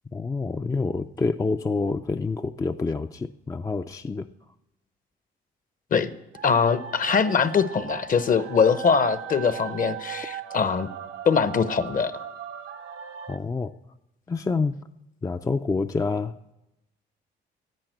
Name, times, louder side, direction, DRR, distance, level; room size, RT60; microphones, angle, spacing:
voice 1, 0.1-4.3 13.3-13.7 14.3-14.8 15.2-16.3, left 4 dB, 15° left, 8 dB, 0.4 m, -27 dB
sound 1, 6.3-13.4, right 8 dB, 90° right, 0.9 m, -38 dB
voice 2, 6.4-10.9 11.3-12.1, left 6 dB, 45° left, 13 dB, 0.8 m, -22 dB
10.5 x 8.8 x 7.8 m, 0.91 s
cardioid pair, 90°, 20 cm